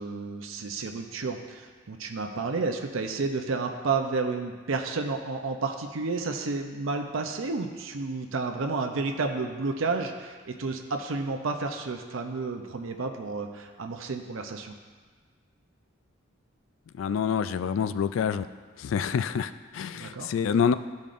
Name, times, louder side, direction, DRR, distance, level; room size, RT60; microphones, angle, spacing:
voice 1, 0.0-14.8 19.9-20.3, right 3 dB, 85° right, 4 dB, 0.6 m, -31 dB
voice 2, 16.9-18.5 18.8-20.7, left 7 dB, 75° left, 13 dB, 0.3 m, -27 dB
13.5 x 5.2 x 2.5 m, 1.5 s
head